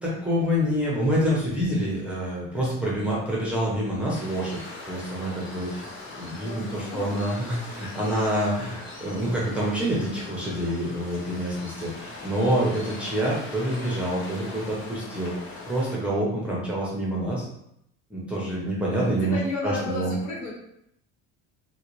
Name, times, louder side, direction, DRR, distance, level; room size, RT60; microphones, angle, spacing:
voice 1, 0.0-4.6 4.9-5.9 6.2-15.3 15.7-17.4 18.1-20.1, equal, 5° right, -6 dB, 0.7 m, -27 dB
Waves surf, 4.1-16.0, left 2 dB, 40° left, 0.9 m, -41 dB
voice 2, 6.4-7.0 19.2-20.5, left 2 dB, 65° left, -3 dB, 1.3 m, -32 dB
3.8 x 2.2 x 3.1 m, 0.76 s
cardioid pair, 160°, 31 cm